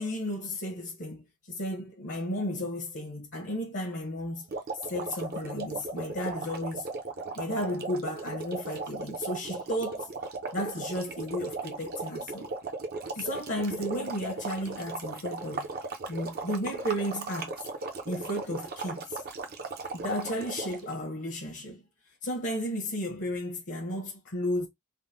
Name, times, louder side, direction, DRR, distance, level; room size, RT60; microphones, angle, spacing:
voice 1, 0.0-4.4 4.7-6.9 7.3-10.1 10.5-12.5 13.1-15.7 16.1-17.7 18.0-19.2 19.9-21.8 22.2-24.7, equal, 55° left, 0.8 m, -33 dB
sound 1, 4.5-20.9, right 3 dB, 45° right, 0.6 m, -37 dB
3.5 x 2.1 x 2.5 m
head